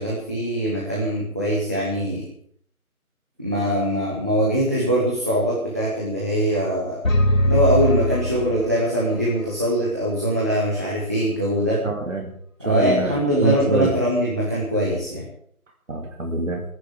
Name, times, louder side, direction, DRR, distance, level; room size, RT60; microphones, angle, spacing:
voice 1, 0.0-2.2 3.4-7.0 7.5-11.8 12.6-15.2, equal, 10° right, -6 dB, 1.2 m, -22 dB
sound 1, 7.0-9.2, equal, 65° left, 2.3 m, -21 dB
voice 2, 11.8-12.3 12.6-13.9 15.9-16.6, right 3 dB, 60° right, 1 dB, 2.4 m, -25 dB
30.0 x 10.5 x 3.8 m, 0.62 s
figure-of-eight pair, 170°, 43 cm